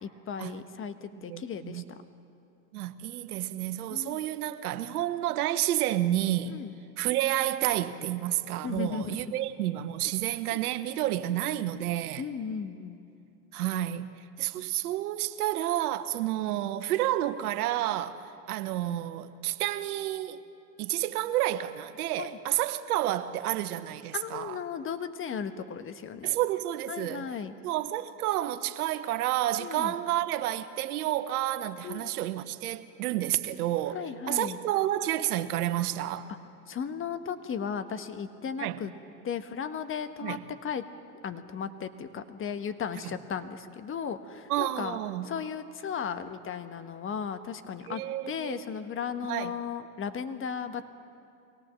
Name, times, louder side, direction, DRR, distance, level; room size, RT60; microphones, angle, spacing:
voice 1, 0.0-1.8 3.9-4.3 6.4-6.8 8.6-9.4 10.5-10.6 12.2-13.0 22.2-22.4 24.1-26.4 26.9-27.5 29.6-29.9 31.8-32.1 33.9-34.6 36.3-36.4 36.7-38.9 39.2-40.8 41.2-45.0 45.2-50.8, left 7 dB, 30° left, 1.3 m, -36 dB
voice 2, 1.1-1.8 2.7-6.6 7.0-12.2 13.5-18.2 18.5-20.4 20.8-24.6 26.2-27.3 27.6-34.0 34.3-36.3 38.6-38.8 40.2-40.4 43.0-43.1 44.5-45.3 47.9-48.6 49.3-49.5, right 13 dB, 75° right, 1.3 m, -30 dB
24.0 x 18.0 x 7.5 m
hypercardioid pair, 100°, 45 cm